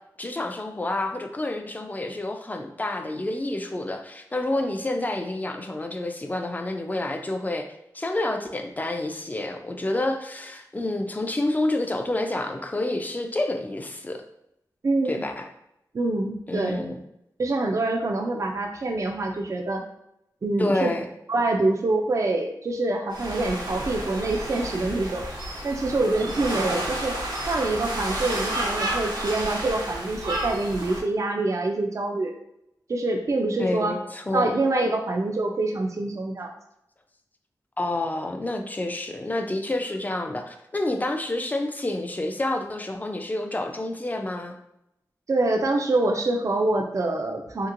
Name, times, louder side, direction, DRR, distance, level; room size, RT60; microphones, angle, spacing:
voice 1, 0.2-7.7 7.9-14.2 15.1-15.5 16.5-17.0 20.6-21.0 33.6-34.6 37.8-44.6, left 2 dB, 25° left, 4 dB, 0.4 m, -28 dB
voice 2, 14.8-15.2 15.9-16.8 17.4-19.8 20.4-20.9 21.3-25.2 25.6-27.2 27.5-32.3 32.9-34.0 34.3-36.5 45.3-47.7, right 2 dB, 50° right, 4 dB, 0.4 m, -25 dB
sound 1, 23.1-31.0, right 1 dB, 85° right, 0.7 m, -31 dB
2.9 x 2.8 x 2.5 m, 0.81 s
wide cardioid pair, 70°, 7 cm